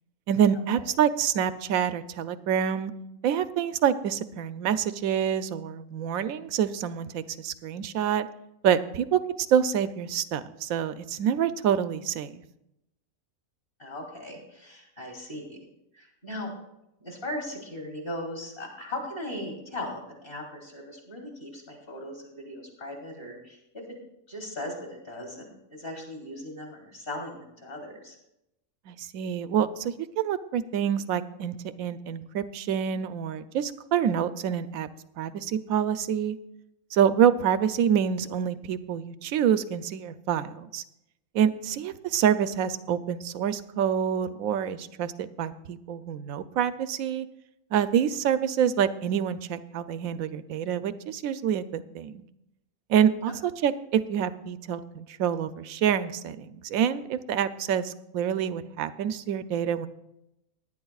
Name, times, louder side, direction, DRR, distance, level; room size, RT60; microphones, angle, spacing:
voice 1, 0.3-2.9 3.2-8.3 8.6-12.4 28.9-34.9 35.2-36.4 36.9-40.8 41.3-47.3 47.7-52.2 52.9-59.9, right 8 dB, 75° right, 12 dB, 1.0 m, -27 dB
voice 2, 13.8-15.6 15.9-16.5 17.0-23.8 24.3-28.2 53.2-53.3, left 1 dB, 40° left, 0 dB, 3.3 m, -38 dB
19.5 x 10.5 x 2.4 m, 0.85 s
omnidirectional pair, 1.5 m